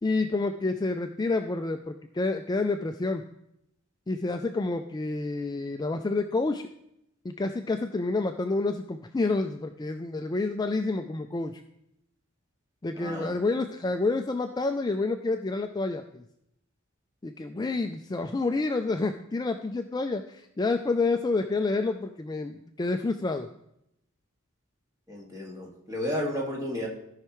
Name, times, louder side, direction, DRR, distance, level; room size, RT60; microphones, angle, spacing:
voice 1, 0.0-3.2 4.1-6.7 7.2-11.6 12.8-16.2 17.2-23.5, left 3 dB, 20° left, 6 dB, 0.3 m, -29 dB
voice 2, 12.9-13.3 25.1-26.9, equal, 15° right, -3 dB, 2.0 m, -32 dB
16.5 x 5.7 x 3.1 m, 0.79 s
head